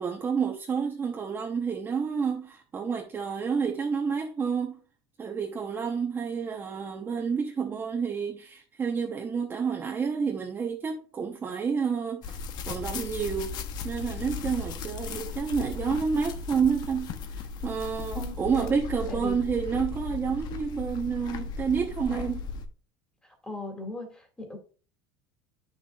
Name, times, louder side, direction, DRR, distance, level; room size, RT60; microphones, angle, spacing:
voice 1, 0.0-4.8 5.2-13.6 13.8-17.1 17.6-22.4, right 6 dB, 20° right, 0.9 m, -29 dB
sound 1, 12.2-22.7, left 5 dB, 45° left, 0.9 m, -36 dB
voice 2, 18.1-18.7 19.1-19.4 23.2-24.6, left 1 dB, 10° left, 2.2 m, -38 dB
9.0 x 6.4 x 2.4 m
supercardioid pair, 130°, 9 cm